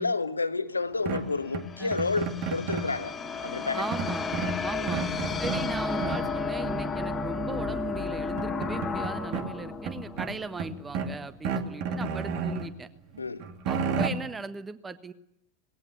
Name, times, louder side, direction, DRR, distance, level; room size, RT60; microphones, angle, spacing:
voice 1, 0.0-3.1 3.4-3.9 4.7-5.0 13.2-13.5, left 3 dB, 80° left, 12 dB, 1.2 m, -30 dB
sound 1, 0.9-11.2, left 4 dB, 15° left, 2.6 m, -33 dB
sound 2, 1.1-3.0 3.9-5.7 6.0-6.4 7.7-7.8 8.2-9.5 9.8-11.2 11.4-12.7 13.1-14.1, right 5 dB, 45° right, 2.1 m, -32 dB
voice 2, 3.7-4.3 4.6-5.1 5.4-12.9 13.6-15.1, right 4 dB, 15° right, 14 dB, 1.3 m, -38 dB
19.5 x 17.5 x 9.5 m, 0.78 s
figure-of-eight pair, 90°, 0 cm